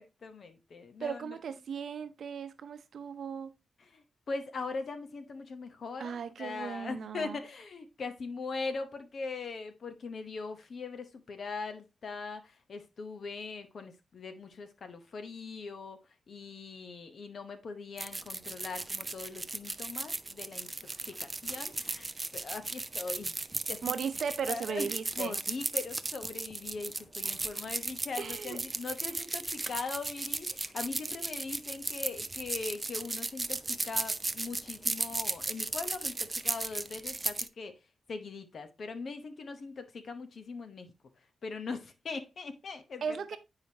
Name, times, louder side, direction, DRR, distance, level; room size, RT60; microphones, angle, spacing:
voice 1, 0.0-1.4 3.9-16.0 16.3-22.1 22.3-23.3 23.7-23.9 24.5-24.9 25.2-37.7 38.1-40.9 41.4-43.0, left 4 dB, 50° left, 0.8 m, -41 dB
voice 2, 1.0-3.5 6.0-7.4 23.8-25.4 27.2-27.4 28.2-28.6 29.0-29.1 43.0-43.4, right 6 dB, 70° right, 0.7 m, -37 dB
sound 1, 18.0-37.5, right 2 dB, 20° right, 0.3 m, -36 dB
8.6 x 4.9 x 2.8 m
wide cardioid pair, 165°, 0 cm